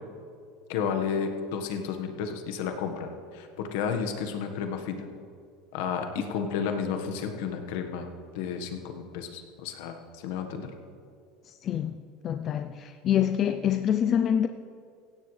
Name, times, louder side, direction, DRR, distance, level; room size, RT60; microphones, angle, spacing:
voice 1, 0.7-5.1 5.7-8.1 8.3-10.7, left 6 dB, 75° left, 6 dB, 1.5 m, -32 dB
voice 2, 12.2-12.7 13.0-14.5, left 9 dB, 40° left, 8 dB, 0.5 m, -25 dB
16.5 x 16.5 x 3.4 m, 2.3 s
supercardioid pair, 120°, 0 cm